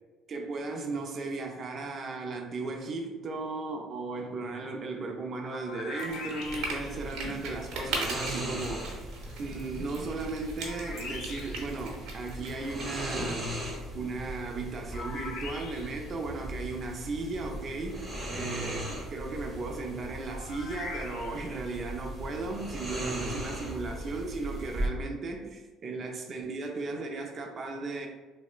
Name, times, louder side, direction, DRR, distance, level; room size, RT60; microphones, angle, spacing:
voice 1, 0.3-9.0 9.4-28.1, right 3 dB, 45° right, 3 dB, 0.4 m, -36 dB
sound 1, 5.4-7.1 10.6-11.8 14.9-16.1 20.3-21.6, left 3 dB, 65° left, 0.4 m, -42 dB
sound 2, 6.0-13.3, right 3 dB, 75° right, 0.8 m, -40 dB
sound 3, 6.4-24.9, right 1 dB, 15° right, 1.0 m, -38 dB
3.7 x 2.1 x 2.4 m, 1.3 s
cardioid pair, 100°, 0 cm